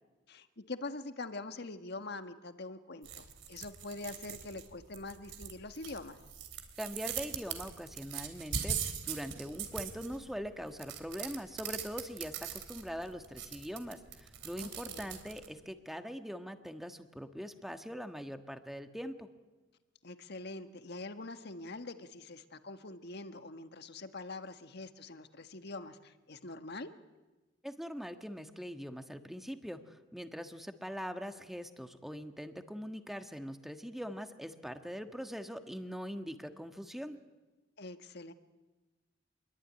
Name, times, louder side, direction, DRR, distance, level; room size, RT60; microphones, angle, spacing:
voice 1, 0.3-6.2 14.6-15.1 20.0-26.9 37.8-38.3, left 2 dB, 60° left, 8 dB, 1.6 m, -44 dB
sound 1, 3.0-15.5, right 7 dB, 75° right, 3.5 m, -42 dB
voice 2, 6.8-19.3 27.6-37.2, equal, ahead, 6 dB, 1.6 m, -42 dB
26.5 x 22.5 x 9.7 m, 1.2 s
head